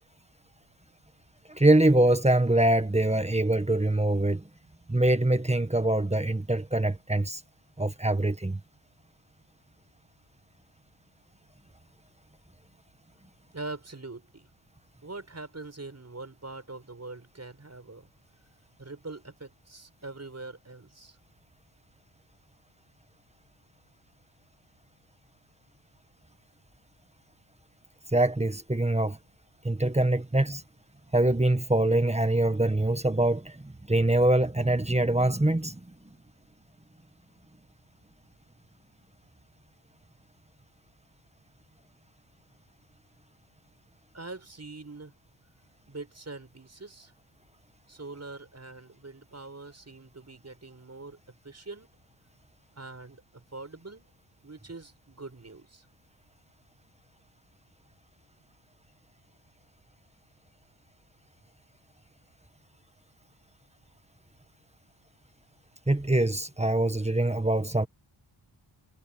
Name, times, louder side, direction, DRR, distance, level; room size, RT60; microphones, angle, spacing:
voice 1, 1.5-4.4 4.9-7.4 7.8-8.6 28.1-29.2 29.6-30.6 31.1-35.8 65.9-67.9, right 1 dB, 15° right, 1.6 m, -24 dB
voice 2, 13.5-14.5 15.0-18.1 18.8-21.2 44.1-45.1 45.9-47.1 47.9-51.9 52.8-54.1 54.4-55.8, right 3 dB, 30° right, 7.5 m, -43 dB
cardioid pair, 75°, 49 cm